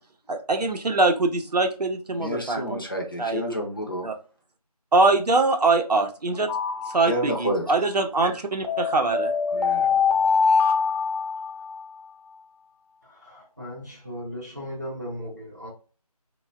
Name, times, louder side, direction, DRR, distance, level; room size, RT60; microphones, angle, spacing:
voice 1, 0.3-2.8 3.2-3.4 4.0-4.1 4.9-6.5 6.9-9.3, right 3 dB, 80° right, 0.6 m, -23 dB
voice 2, 2.2-4.1 7.1-7.6 9.5-10.0, equal, 35° left, 0.5 m, -29 dB
sound 1, 6.5-7.5 8.6-11.9, left 5 dB, 80° left, 0.8 m, -24 dB
voice 3, 13.0-15.7, equal, 25° right, 0.6 m, -37 dB
3.1 x 2.1 x 2.3 m
figure-of-eight pair, 175°, 20 cm